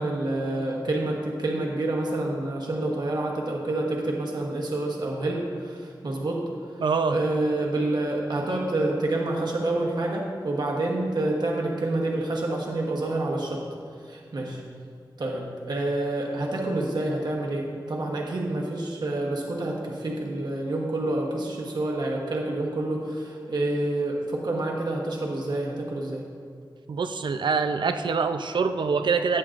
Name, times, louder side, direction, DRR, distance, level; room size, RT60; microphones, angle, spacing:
voice 1, 0.0-6.8 7.1-13.6 14.0-14.6 15.2-26.3, right 2 dB, 65° right, -1 dB, 1.1 m, -28 dB
voice 2, 6.8-7.2 26.9-29.4, right 5 dB, 85° right, 8 dB, 0.5 m, -25 dB
15.0 x 8.5 x 2.5 m, 2.2 s
wide cardioid pair, 100°, 8 cm